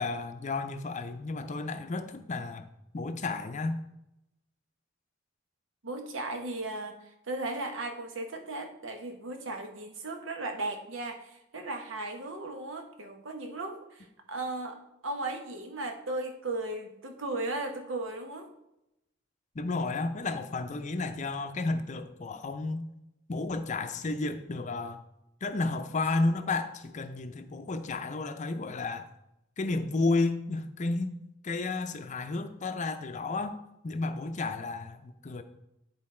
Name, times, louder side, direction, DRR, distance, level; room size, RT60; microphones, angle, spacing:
voice 1, 0.0-2.6 2.9-3.8 19.5-22.9 23.3-25.0 25.4-29.1 29.6-31.1 31.4-33.6 33.8-35.4, left 3 dB, 40° left, 8 dB, 0.5 m, -32 dB
voice 2, 5.8-18.5, right 2 dB, 80° right, 4 dB, 1.1 m, -36 dB
9.7 x 4.0 x 4.3 m, 0.86 s
head